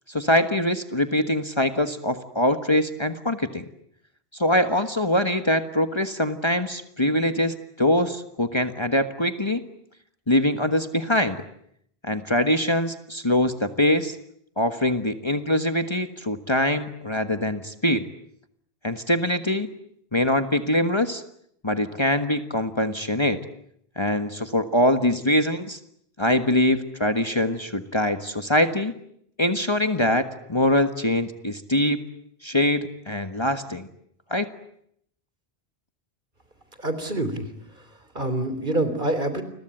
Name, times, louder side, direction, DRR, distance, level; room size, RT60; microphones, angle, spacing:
voice 1, 0.1-3.6 4.3-9.6 10.3-11.4 12.0-14.2 14.6-18.1 18.8-19.7 20.1-21.2 21.6-23.4 24.0-25.8 26.2-28.9 29.4-32.0 32.4-33.9 34.3-34.5, left 1 dB, 25° left, 8 dB, 1.5 m, -23 dB
voice 2, 36.8-37.5 38.2-39.4, right 1 dB, 50° right, 11 dB, 3.7 m, -26 dB
29.5 x 22.5 x 9.0 m, 0.71 s
omnidirectional pair, 1.1 m